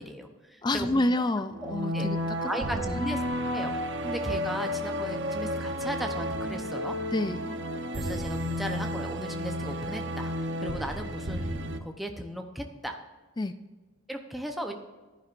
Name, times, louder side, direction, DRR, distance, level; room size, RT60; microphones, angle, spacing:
voice 1, 0.0-1.0 1.6-2.1 2.5-3.2 3.5-3.8 4.0-6.9 8.0-10.3 10.6-13.0 14.1-14.7, equal, ahead, 3 dB, 0.7 m, -36 dB
voice 2, 0.6-2.5 2.8-3.0 7.1-7.4 13.4-13.5, left 1 dB, 20° left, 11 dB, 0.3 m, -28 dB
sound 1, 1.5-11.8, equal, 55° right, 0.8 m, -32 dB
15.0 x 10.5 x 2.6 m, 1.3 s
head